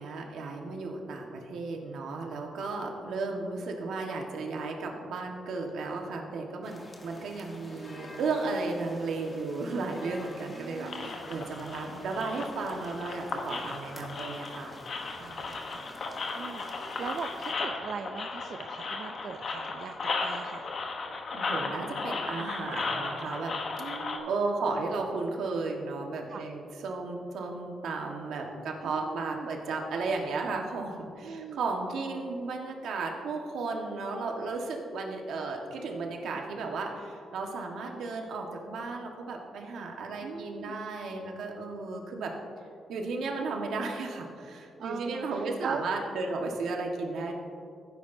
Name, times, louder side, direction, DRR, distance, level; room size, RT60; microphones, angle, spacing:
voice 1, 0.0-14.8 21.3-23.6 24.3-42.3 42.9-47.3, right 3 dB, 75° right, 1 dB, 1.4 m, -34 dB
sound 1, 6.6-17.5, left 1 dB, 15° left, 1.2 m, -48 dB
voice 2, 10.5-11.2 13.6-13.8 15.2-15.9 16.3-19.9 20.2-20.7 23.8-24.3 26.3-26.5 28.8-29.5 31.2-31.6 36.3-36.5 40.2-40.8 44.8-45.9, right 6 dB, 55° right, 6 dB, 0.4 m, -40 dB
sound 2, 10.9-24.2, left 3 dB, 45° left, 1.0 m, -36 dB
16.0 x 9.5 x 2.7 m, 2.5 s
cardioid pair, 155°, 0 cm